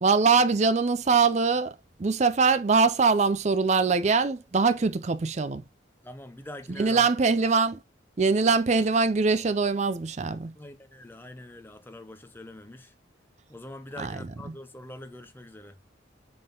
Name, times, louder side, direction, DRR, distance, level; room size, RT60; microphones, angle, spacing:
voice 1, 0.0-1.7 2.0-5.6 6.8-7.8 8.2-10.5 14.0-14.1, right 4 dB, 35° right, 0.4 m, -23 dB
voice 2, 6.0-7.1 10.6-12.9 13.5-15.8, left 1 dB, 10° left, 0.9 m, -44 dB
7.6 x 3.8 x 5.3 m
head